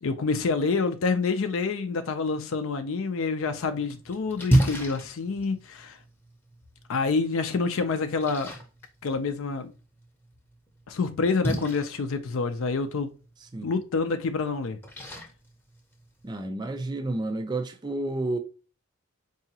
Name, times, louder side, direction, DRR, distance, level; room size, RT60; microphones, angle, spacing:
voice 1, 0.0-6.0 6.9-8.5 9.0-9.7 10.9-13.1 13.6-14.8, left 4 dB, 70° left, 0.4 m, -27 dB
Splash splatter, 3.4-16.4, right 1 dB, 10° left, 0.7 m, -33 dB
voice 2, 13.4-13.8 16.2-18.4, right 2 dB, 20° right, 0.3 m, -31 dB
4.7 x 2.7 x 2.7 m
head